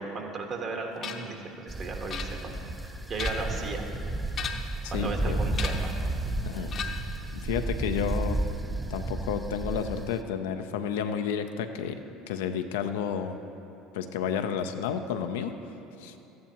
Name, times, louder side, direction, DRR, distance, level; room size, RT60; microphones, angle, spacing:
voice 1, 0.0-2.6 3.1-3.8 4.9-5.9 6.2-6.8, right 3 dB, 45° right, 2 dB, 1.5 m, -36 dB
sound 1, 1.0-1.4 2.1-2.7 3.0-3.6 4.3-4.8 5.5-6.0 6.7-7.2, left 7 dB, 45° left, 0.8 m, -36 dB
sound 2, 1.7-10.2, right 2 dB, 10° right, 0.5 m, -32 dB
voice 2, 4.8-5.4 6.4-6.7 7.3-8.4 8.9-12.0 12.3-13.4 13.9-15.5 16.0-16.2, left 7 dB, 75° left, 7 dB, 0.5 m, -31 dB
14.0 x 9.5 x 2.9 m, 2.9 s
hypercardioid pair, 70°, 0 cm